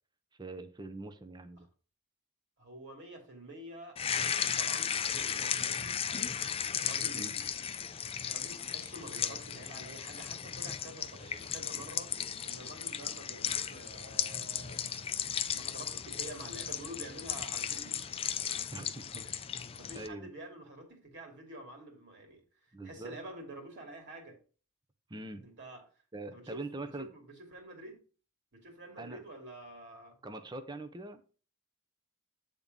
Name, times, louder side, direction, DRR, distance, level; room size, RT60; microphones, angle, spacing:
voice 1, 0.4-1.7 7.1-7.3 18.7-19.3 19.9-20.3 22.7-23.2 25.1-25.5 26.1-27.1 29.0-29.2 30.2-31.2, right 2 dB, 20° right, 0.7 m, -43 dB
voice 2, 2.6-5.9 6.7-7.5 8.3-15.0 15.5-18.3 19.1-19.3 19.7-22.4 22.7-24.4 25.4-25.8 26.3-26.6 27.0-28.0 28.5-30.1, right 1 dB, 50° right, 2.5 m, -48 dB
sound 1, 4.0-20.1, left 8 dB, 25° left, 0.4 m, -35 dB
8.8 x 3.7 x 5.3 m
head